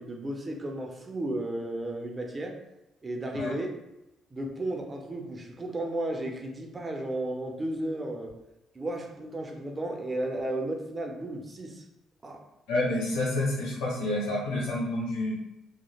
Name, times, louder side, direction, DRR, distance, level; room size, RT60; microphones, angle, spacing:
voice 1, 0.0-2.6 3.0-3.7 4.3-8.3 8.7-11.8 12.2-12.4, right 1 dB, 30° right, 2 dB, 0.5 m, -34 dB
voice 2, 12.7-15.4, left 1 dB, 85° left, -5 dB, 0.9 m, -29 dB
3.1 x 2.1 x 2.3 m, 0.93 s
supercardioid pair, 60°, 0 cm